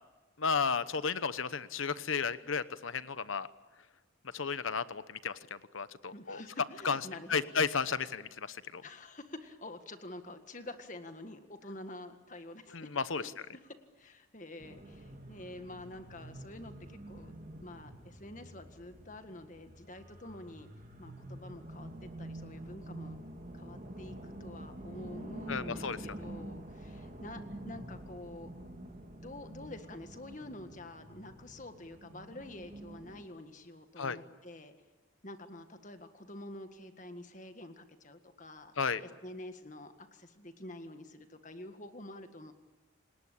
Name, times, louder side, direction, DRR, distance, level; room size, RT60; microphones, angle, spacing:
voice 1, 0.4-3.5 4.3-6.4 6.8-7.0 7.3-8.8 12.7-13.2 25.5-26.0 34.0-34.2 38.8-39.0, left 5 dB, 80° left, 14 dB, 1.0 m, -33 dB
voice 2, 6.1-7.5 8.8-12.9 13.1-13.3 14.0-17.4 17.6-20.7 21.0-23.2 23.5-28.5 29.2-34.7 35.2-38.7 39.0-42.5, left 1 dB, 40° left, 8 dB, 1.8 m, -48 dB
sound 1, 14.6-33.2, right 1 dB, 40° right, 2.4 m, -47 dB
sound 2, 22.4-28.2, equal, 5° left, 4.1 m, -60 dB
28.5 x 19.0 x 8.7 m, 1.2 s
head